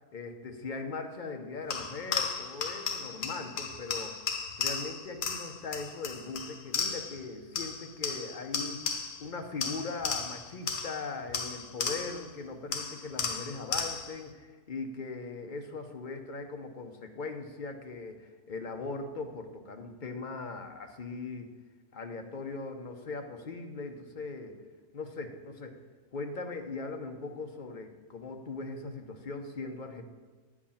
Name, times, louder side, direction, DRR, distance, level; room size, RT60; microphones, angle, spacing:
voice 1, 0.1-4.2 4.6-8.8 9.2-21.5 21.9-24.5 24.9-25.8 26.1-30.0, left 3 dB, 45° left, 5 dB, 0.9 m, -39 dB
sound 1, 1.7-7.2 7.5-9.3 9.6-12.3 12.7-14.2, left 5 dB, 85° left, 1.3 m, -35 dB
8.9 x 4.8 x 7.2 m, 1.4 s
omnidirectional pair, 1.3 m